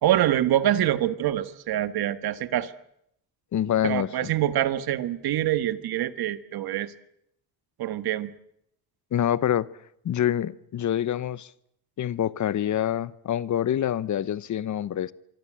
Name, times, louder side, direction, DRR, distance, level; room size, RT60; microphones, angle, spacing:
voice 1, 0.0-2.7 3.8-6.9 7.8-8.3, right 12 dB, 70° right, 1.6 m, -25 dB
voice 2, 3.5-4.3 9.1-9.7 10.0-11.5 12.0-15.1, left 10 dB, 50° left, 0.9 m, -26 dB
25.5 x 24.0 x 7.6 m
cardioid pair, 105°, 38 cm